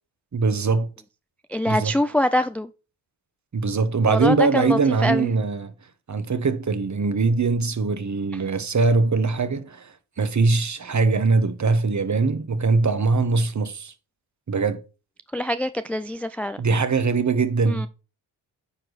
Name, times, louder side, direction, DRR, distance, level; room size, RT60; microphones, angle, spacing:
voice 1, 0.3-0.9 1.7-1.9 3.5-5.7 6.1-13.9 14.5-14.8 16.6-17.9, right 4 dB, 35° right, 1.2 m, -22 dB
voice 2, 1.5-2.7 4.1-5.3 15.3-16.6 17.7-17.9, left 1 dB, 5° left, 0.3 m, -24 dB
9.7 x 4.7 x 4.0 m
supercardioid pair, 50°, 48 cm